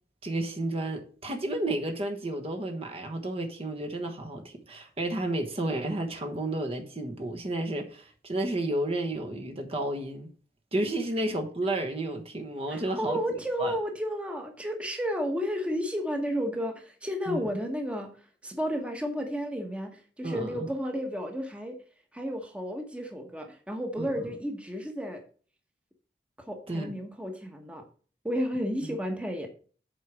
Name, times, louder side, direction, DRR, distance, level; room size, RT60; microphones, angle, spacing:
voice 1, 0.2-10.3 10.7-13.2 13.6-13.8 17.3-17.5 20.2-20.7 24.0-24.2 26.7-26.9 28.8-29.0, right 1 dB, 35° right, 1.2 m, -32 dB
voice 2, 12.7-18.1 18.4-21.8 22.1-25.2 26.5-27.8 28.2-29.5, equal, 5° right, 1.2 m, -32 dB
8.0 x 4.8 x 6.2 m
head